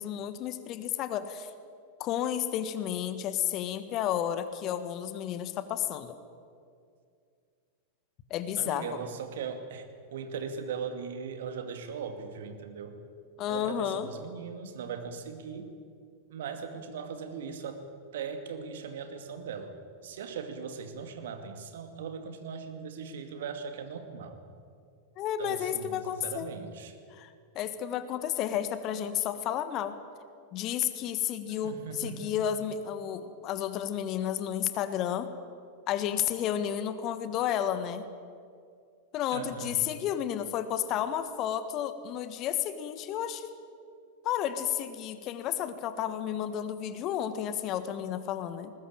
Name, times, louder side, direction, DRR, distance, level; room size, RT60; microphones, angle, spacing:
voice 1, 0.0-1.5 2.0-6.1 8.3-9.0 13.4-14.1 25.2-26.5 27.1-30.0 30.5-35.3 35.9-38.0 39.1-43.5 44.2-48.7, left 10 dB, 35° left, 11 dB, 1.5 m, -32 dB
voice 2, 8.6-13.0 13.5-15.7 16.3-17.8 18.1-19.7 20.0-24.4 25.4-27.0 31.5-32.4 39.3-39.8, right 6 dB, 60° right, 7 dB, 2.4 m, -39 dB
20.0 x 20.0 x 8.9 m, 2.3 s
figure-of-eight pair, 90°, 0 cm